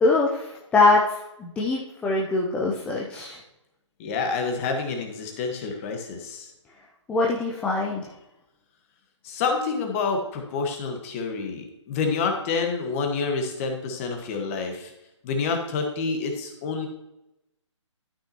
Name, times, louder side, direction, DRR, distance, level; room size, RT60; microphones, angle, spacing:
voice 1, 0.0-1.0 1.4-3.4 7.1-8.0, left 3 dB, 5° left, -3 dB, 0.6 m, -22 dB
voice 2, 4.0-6.5 9.2-14.9 15.2-16.9, left 4 dB, 25° left, 3 dB, 1.4 m, -28 dB
12.5 x 5.7 x 2.9 m, 0.89 s
figure-of-eight pair, 145°, 16 cm